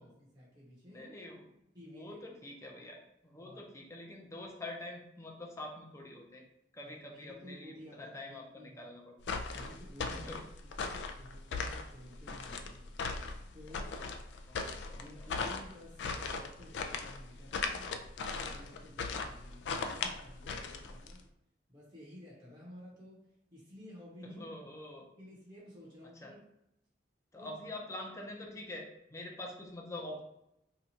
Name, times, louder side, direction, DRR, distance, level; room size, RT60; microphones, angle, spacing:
voice 1, 0.0-1.1 1.7-2.3 3.4-3.7 6.8-8.8 9.5-10.3 10.6-12.9 13.5-14.0 14.9-18.0 18.3-21.3 21.7-24.4 25.2-26.4 27.4-27.5, equal, 25° right, -5 dB, 0.8 m, -53 dB
voice 2, 0.9-1.4 1.9-3.0 3.2-6.4 6.7-9.1 10.1-10.4 13.8-14.1 14.5-15.3 24.2-25.1 26.2-26.3 27.3-30.2, left 1 dB, 15° left, 0 dB, 0.5 m, -46 dB
sound 1, 9.2-21.2, left 4 dB, 80° left, 0.3 m, -38 dB
2.8 x 2.3 x 4.1 m, 0.82 s
head